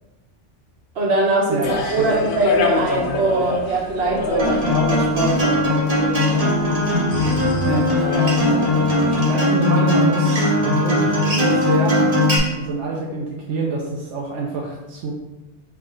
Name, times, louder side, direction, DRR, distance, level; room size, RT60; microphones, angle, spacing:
voice 1, 0.9-5.8, right 2 dB, 65° right, -2 dB, 1.2 m, -21 dB
voice 2, 1.5-2.2 7.6-7.9 9.3-12.0 12.5-15.1, right 2 dB, 85° right, -1 dB, 0.9 m, -26 dB
sound 1, 1.6-9.3, left 4 dB, 60° left, 0.6 m, -27 dB
Acoustic guitar, 4.4-12.4, left 1 dB, 35° right, 1.0 m, -19 dB
4.7 x 2.4 x 3.7 m, 1.1 s
omnidirectional pair, 1.2 m